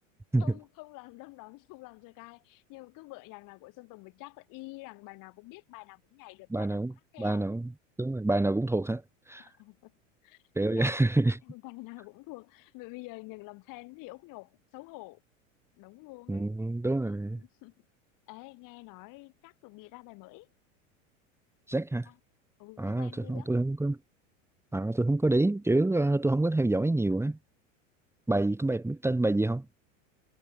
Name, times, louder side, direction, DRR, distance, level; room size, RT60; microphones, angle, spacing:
voice 1, 0.4-6.8 7.1-7.4 9.4-9.9 10.2-10.4 10.7-10.9 11.4-15.2 15.8-16.5 17.0-17.8 18.3-20.5 22.0-22.2 22.6-23.5, left 23 dB, 55° left, 6.4 m, -48 dB
voice 2, 6.5-6.9 7.2-7.7 8.0-9.0 9.3-9.5 10.6-11.4 16.3-17.4 21.7-22.1 22.8-24.0 24.7-27.4 28.3-29.7, right 2 dB, 5° right, 2.0 m, -27 dB
hypercardioid pair, 95°, 39 cm